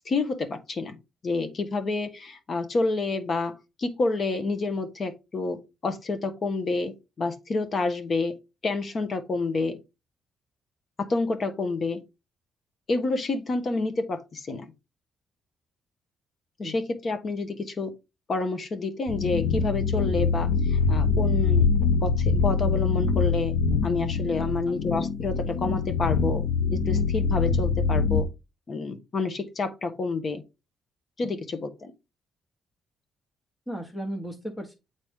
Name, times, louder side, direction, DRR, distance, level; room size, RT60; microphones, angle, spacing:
voice 1, 0.1-1.0 1.2-8.3 8.6-9.8 11.0-12.0 12.9-14.7 16.6-17.9 18.3-21.7 22.0-23.5 23.8-26.4 26.7-28.3 28.7-30.4 31.2-31.9, left 3 dB, 45° left, 1.1 m, -29 dB
sound 1, 19.1-28.2, left 5 dB, 85° left, 0.8 m, -24 dB
voice 2, 24.4-24.8 33.7-34.7, equal, 10° left, 1.1 m, -36 dB
8.0 x 4.0 x 3.6 m
cardioid pair, 90°, 0 cm